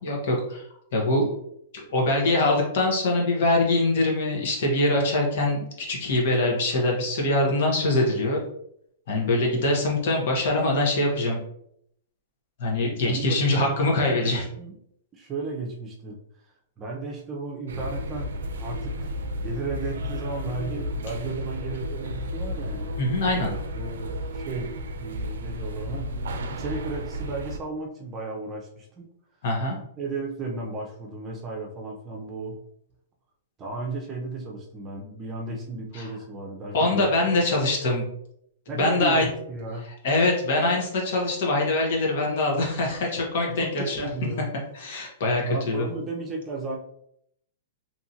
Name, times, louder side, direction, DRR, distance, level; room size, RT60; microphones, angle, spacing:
voice 1, 0.0-1.3 1.7-8.4 9.1-11.4 12.6-14.4 23.0-23.5 29.4-29.8 35.9-36.1 36.7-38.0 38.7-39.3 39.8-44.1 44.7-45.9, left 2 dB, 65° left, 0 dB, 1.1 m, -23 dB
voice 2, 13.0-14.3 14.6-14.8 15.1-16.2 16.8-22.9 23.7-26.1 26.5-29.1 30.0-32.6 33.6-37.4 38.7-39.9 43.5-44.5 45.4-46.8, right 3 dB, 25° right, 0 dB, 0.6 m, -34 dB
sound 1, 17.7-27.6, equal, 80° right, 0.4 m, -32 dB
2.8 x 2.5 x 2.8 m, 0.72 s
hypercardioid pair, 135°, 0 cm